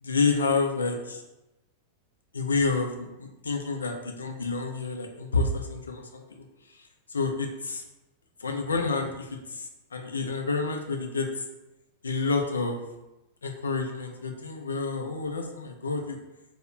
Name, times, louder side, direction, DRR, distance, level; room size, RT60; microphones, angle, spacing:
voice 1, 0.0-1.2 2.3-7.8 8.4-11.4 12.0-12.8 13.4-16.2, left 4 dB, 75° left, 4 dB, 0.3 m, -29 dB
2.2 x 2.0 x 3.0 m, 0.99 s
figure-of-eight pair, 95°, 0 cm